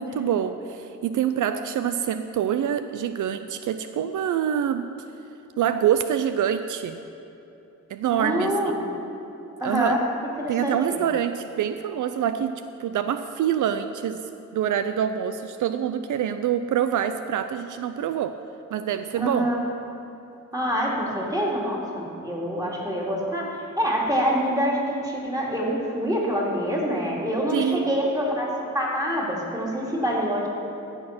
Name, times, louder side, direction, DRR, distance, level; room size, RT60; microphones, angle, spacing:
voice 1, 0.0-4.9 5.6-7.0 7.9-8.5 9.6-10.0 10.5-12.5 12.8-18.4 18.7-19.5 27.5-27.9, right 9 dB, 75° right, 10 dB, 0.5 m, -25 dB
voice 2, 8.1-8.8 9.6-10.0 10.4-11.0 19.2-19.6 20.5-28.5 28.7-30.5, equal, 10° right, -3 dB, 2.6 m, -26 dB
14.5 x 6.6 x 5.9 m, 2.9 s
cardioid pair, 90°, 31 cm